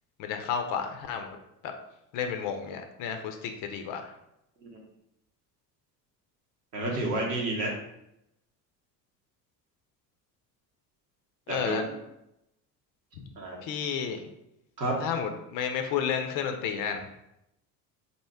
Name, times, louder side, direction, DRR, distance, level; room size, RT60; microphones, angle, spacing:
voice 1, 0.2-1.4 1.6-1.7 2.1-4.1 11.5-11.9 13.6-14.3 15.0-17.1, left 7 dB, 40° left, 6 dB, 0.6 m, -31 dB
voice 2, 6.7-7.7 11.5-11.8 13.4-13.6 14.8-14.9, right 2 dB, 80° right, -1 dB, 1.0 m, -30 dB
4.3 x 2.7 x 3.4 m, 0.82 s
figure-of-eight pair, 60°, 49 cm